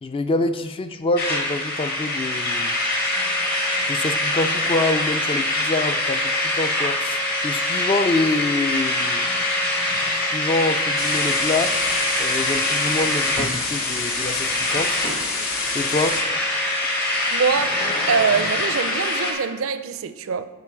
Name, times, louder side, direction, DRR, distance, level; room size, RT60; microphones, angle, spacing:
voice 1, 0.0-2.7 3.9-9.3 10.1-11.8 12.2-15.0 15.7-16.2, left 2 dB, 25° left, 8 dB, 0.3 m, -26 dB
sound 1, 1.2-19.3, left 1 dB, 45° left, 1.3 m, -24 dB
sound 2, 11.0-16.2, left 4 dB, 65° left, 1.1 m, -28 dB
voice 2, 17.3-17.8 18.1-20.4, right 5 dB, 65° right, 11 dB, 0.4 m, -23 dB
9.5 x 4.7 x 4.5 m, 1.3 s
head